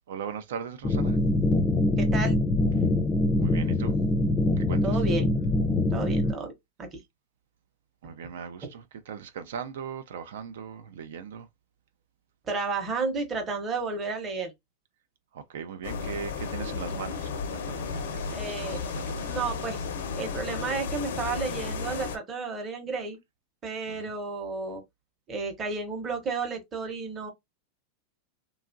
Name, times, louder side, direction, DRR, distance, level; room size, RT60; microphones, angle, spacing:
voice 1, 0.1-1.2 3.4-3.9 4.6-5.0 8.0-11.5 15.3-19.4 23.9-24.1, right 7 dB, 85° right, 0.4 m, -39 dB
sound 1, 0.8-6.3, left 2 dB, 20° left, 0.4 m, -24 dB
voice 2, 2.0-2.4 4.8-5.3 5.9-6.5 6.8-7.0 8.6-8.7 12.5-14.5 18.3-18.9 19.3-19.8 20.2-23.2 23.6-24.8 25.3-27.3, right 4 dB, 20° right, 0.8 m, -32 dB
sound 2, 15.8-22.2, left 5 dB, 85° left, 0.6 m, -33 dB
2.9 x 2.3 x 2.4 m
supercardioid pair, 150°, 0 cm